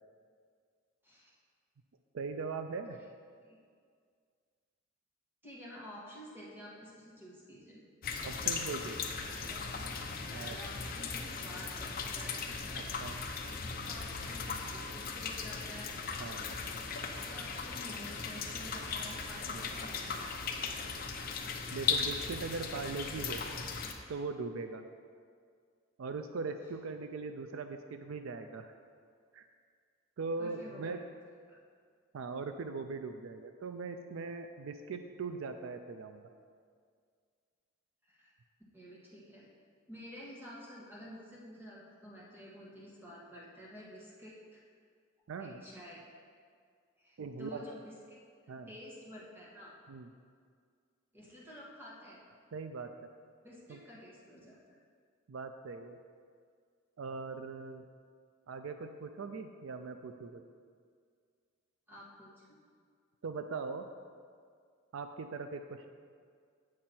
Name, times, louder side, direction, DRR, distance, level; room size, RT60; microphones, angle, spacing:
voice 1, 2.1-3.0 8.2-9.0 10.3-10.6 12.7-13.2 16.2-16.4 19.5-19.7 21.7-23.4 24.1-24.8 26.0-28.7 29.3-29.5 30.2-31.0 32.1-36.3 45.3-45.6 47.2-47.6 48.5-48.7 49.9-50.1 52.5-52.9 53.7-53.8 55.3-56.0 57.0-57.8 58.5-60.4 63.2-63.8 64.9-65.9, right 4 dB, 70° right, 7 dB, 0.4 m, -40 dB
voice 2, 5.4-7.8 9.5-9.9 10.3-12.5 13.5-15.9 17.0-20.9 30.4-31.0 31.5-31.6 38.0-38.3 38.7-39.5 39.9-44.6 45.4-46.0 47.0-49.7 51.1-52.2 53.4-54.8 61.9-62.6, equal, 10° right, -5 dB, 1.6 m, -50 dB
sound 1, 8.0-23.9, left 5 dB, 45° left, 0.7 m, -38 dB
8.6 x 6.2 x 4.3 m, 2.1 s
head